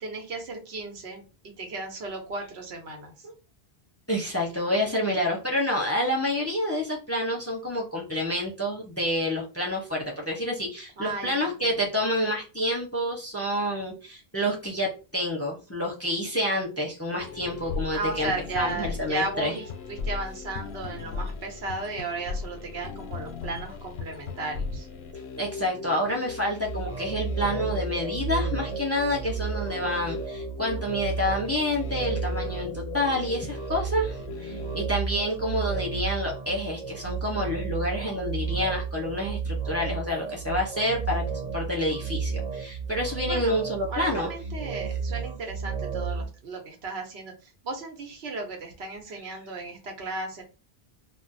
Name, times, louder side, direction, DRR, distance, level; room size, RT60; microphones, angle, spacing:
voice 1, 0.0-3.3 11.0-11.9 17.9-24.9 43.3-43.6 43.9-50.4, right 3 dB, 85° right, 2 dB, 1.1 m, -35 dB
voice 2, 4.1-19.5 23.5-23.6 25.4-44.3, left 1 dB, 20° left, -1 dB, 0.6 m, -28 dB
sound 1, 17.2-35.0, left 5 dB, 85° left, 0.8 m, -38 dB
sound 2, 26.6-46.3, right 5 dB, 45° right, 0.6 m, -33 dB
2.4 x 2.0 x 3.9 m, 0.32 s
omnidirectional pair, 1.0 m